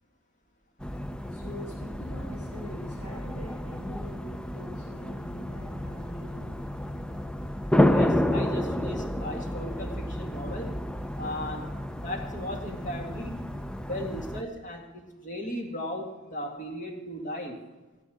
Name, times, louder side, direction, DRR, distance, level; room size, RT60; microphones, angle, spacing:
sound 1, 0.8-14.4, left 1 dB, 5° left, 0.4 m, -30 dB
voice 1, 1.3-7.2, left 1 dB, 75° left, -5 dB, 4.3 m, -44 dB
voice 2, 7.7-10.8 11.2-13.4 13.8-17.6, equal, 35° left, 2 dB, 2.0 m, -36 dB
16.5 x 8.5 x 6.4 m, 1.2 s
head